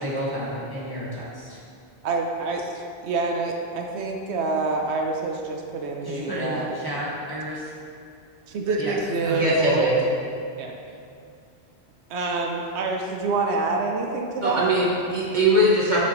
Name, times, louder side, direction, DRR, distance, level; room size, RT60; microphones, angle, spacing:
voice 1, 0.0-1.6 6.0-7.7 8.8-9.0 9.2-9.8, equal, 20° left, -9 dB, 1.6 m, -31 dB
voice 2, 2.0-6.7 8.5-9.9 10.6-10.8 12.1-14.7, right 3 dB, 80° right, 2 dB, 1.0 m, -27 dB
voice 3, 9.3-9.9 14.4-16.0, right 1 dB, 45° right, -5 dB, 1.0 m, -21 dB
7.2 x 6.1 x 3.0 m, 2.4 s
omnidirectional pair, 1.1 m